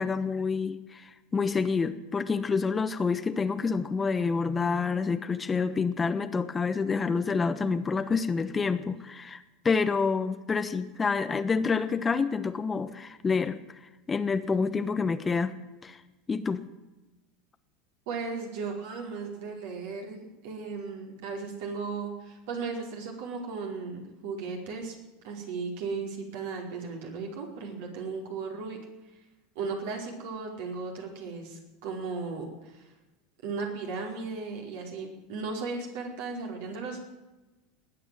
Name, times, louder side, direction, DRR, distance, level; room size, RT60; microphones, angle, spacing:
voice 1, 0.0-13.8 14.1-15.6 15.8-16.0 16.3-16.6, left 5 dB, 20° left, 11 dB, 1.1 m, -28 dB
voice 2, 18.1-24.9 25.2-28.8 29.5-32.8 33.4-37.1, right 4 dB, 65° right, 1 dB, 4.6 m, -36 dB
20.0 x 9.2 x 7.7 m, 1.1 s
hypercardioid pair, 85°, 0 cm